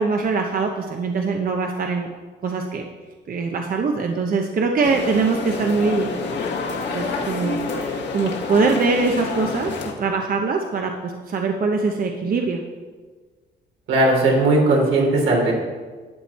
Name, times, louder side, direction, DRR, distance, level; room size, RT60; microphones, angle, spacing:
voice 1, 0.0-2.1 2.4-2.8 3.3-6.1 6.7-9.7 10.0-12.6, right 4 dB, 45° right, 3 dB, 0.9 m, -23 dB
sound 1, 4.8-9.9, left 4 dB, 60° left, 1.7 m, -28 dB
voice 2, 13.9-15.5, right 2 dB, 80° right, -1 dB, 3.1 m, -17 dB
11.5 x 8.3 x 4.2 m, 1.5 s
cardioid pair, 90°, 20 cm